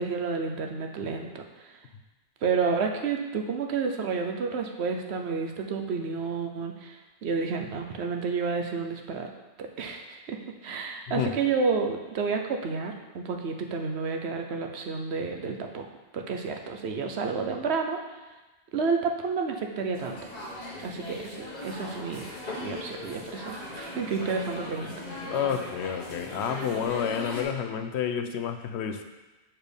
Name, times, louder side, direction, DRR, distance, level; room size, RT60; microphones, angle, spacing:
voice 1, 0.0-1.7 2.4-9.3 9.6-15.8 16.1-18.0 18.7-20.3 20.8-22.3 22.6-25.0, right 5 dB, 85° right, 3 dB, 1.0 m, -30 dB
sound 1, 19.9-27.4, left 1 dB, 40° left, 1.3 m, -39 dB
voice 2, 25.3-29.0, left 8 dB, 85° left, 7 dB, 0.9 m, -29 dB
6.7 x 4.5 x 5.2 m, 1.1 s
omnidirectional pair, 1.1 m